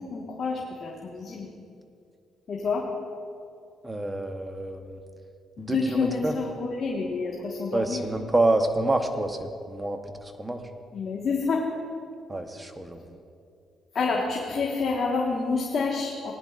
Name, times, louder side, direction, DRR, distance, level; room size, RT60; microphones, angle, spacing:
voice 1, 0.0-1.5 2.5-2.8 5.6-8.0 10.9-11.6 13.9-16.3, left 4 dB, 55° left, -3 dB, 1.6 m, -28 dB
voice 2, 3.8-5.0 5.6-6.3 7.7-10.6 12.3-13.2, right 2 dB, 15° right, 5 dB, 1.0 m, -28 dB
19.0 x 10.5 x 2.5 m, 2.4 s
cardioid pair, 90°, 0 cm